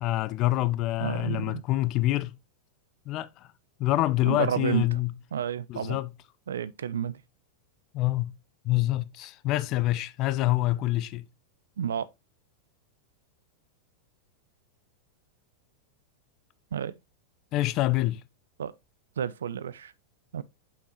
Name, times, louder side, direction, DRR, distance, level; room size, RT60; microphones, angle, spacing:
voice 1, 0.0-2.4 3.1-3.5 3.8-5.1 5.7-6.1 7.9-8.4 8.6-11.3 17.5-18.2, left 16 dB, 40° left, 0.5 m, -26 dB
voice 2, 1.0-1.6 4.2-5.0 5.3-6.0 6.5-7.2 11.8-12.1 16.7-16.9 18.6-18.7 19.2-19.9 20.3-20.4, right 8 dB, 65° right, 0.4 m, -30 dB
6.6 x 5.4 x 2.9 m
figure-of-eight pair, 90°, 0 cm